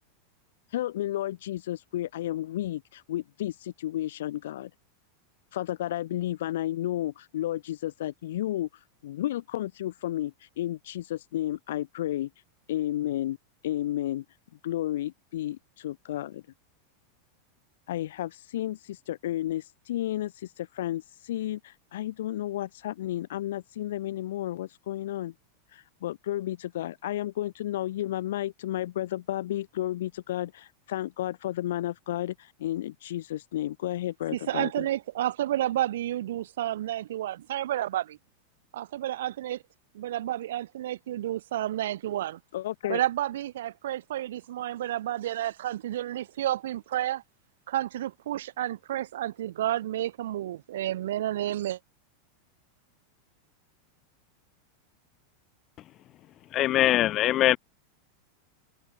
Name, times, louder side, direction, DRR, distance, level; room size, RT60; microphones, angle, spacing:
voice 1, 0.7-4.7 5.5-12.3 12.7-13.4 13.6-14.2 14.6-16.4 17.9-25.3 25.7-34.9 42.5-43.0, left 13 dB, 75° left, 4.7 m, -32 dB
voice 2, 34.3-38.2 38.7-39.6 39.9-42.4 42.9-47.2 47.7-51.8, right 13 dB, 80° right, 3.9 m, -30 dB
voice 3, 56.5-57.6, left 14 dB, 25° left, 0.3 m, -22 dB
open air
supercardioid pair, 170°, 0 cm